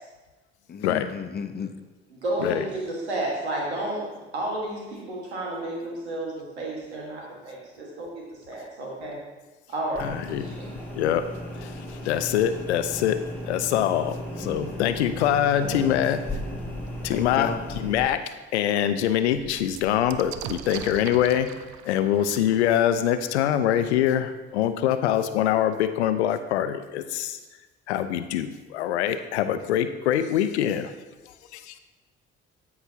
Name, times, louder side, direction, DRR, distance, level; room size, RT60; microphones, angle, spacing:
voice 1, 0.7-1.7 17.1-17.6, left 6 dB, 30° left, 9 dB, 0.7 m, -33 dB
voice 2, 2.1-9.2 9.7-10.2 10.4-10.6, right 1 dB, 90° right, -2 dB, 1.6 m, -32 dB
sound 1, 9.9-18.1, equal, 5° left, 2.3 m, -35 dB
voice 3, 10.0-10.6 11.0-11.2 11.6-13.2 13.5-16.2 17.0-18.2 18.5-21.5 21.8-27.4 27.9-30.9 31.5-31.6, left 10 dB, 85° left, 11 dB, 0.5 m, -24 dB
sound 2, 17.7-17.8 18.2-18.3 18.6-24.2 25.1-25.2 25.5-26.1, right 11 dB, 60° right, 0.5 m, -42 dB
13.0 x 4.8 x 2.8 m, 1.2 s
hypercardioid pair, 50°, 32 cm